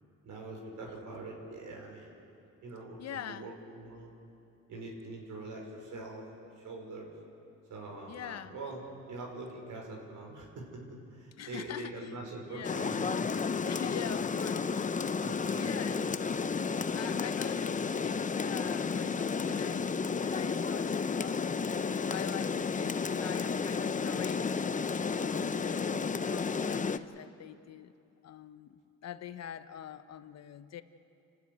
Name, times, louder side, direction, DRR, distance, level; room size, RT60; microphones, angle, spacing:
voice 1, 0.2-2.1 2.6-4.2 4.7-6.3 6.6-7.1 7.7-8.8 9.1-10.8 11.1-13.4 14.0-14.1 15.2-16.2, right 2 dB, 75° right, -1 dB, 5.4 m, -44 dB
voice 2, 3.0-3.5 8.1-8.6 11.4-12.9 13.6-14.9 15.5-16.2 16.9-19.9 20.2-21.6 22.1-27.9 28.2-30.8, left 10 dB, 60° left, 12 dB, 1.0 m, -44 dB
Rain, 12.6-27.0, left 5 dB, 25° left, 0.7 m, -32 dB
28.5 x 12.5 x 9.5 m, 2.6 s
cardioid pair, 90°, 30 cm